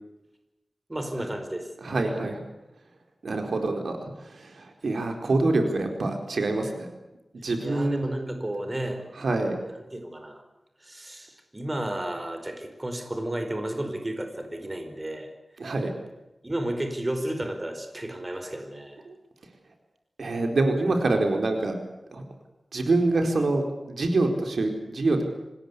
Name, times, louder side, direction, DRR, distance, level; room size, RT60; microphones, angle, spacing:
voice 1, 0.9-2.1 7.6-9.0 9.7-10.4 10.8-15.3 16.4-19.0, right 1 dB, 25° right, 6 dB, 4.8 m, -33 dB
voice 2, 1.8-2.4 3.2-6.9 7.4-8.5 9.2-9.6 15.6-15.9 19.1-19.2 20.2-21.8 22.1-22.2 22.7-25.2, right 2 dB, 80° right, 5 dB, 4.5 m, -26 dB
26.5 x 20.0 x 8.5 m, 0.96 s
wide cardioid pair, 105°, 0 cm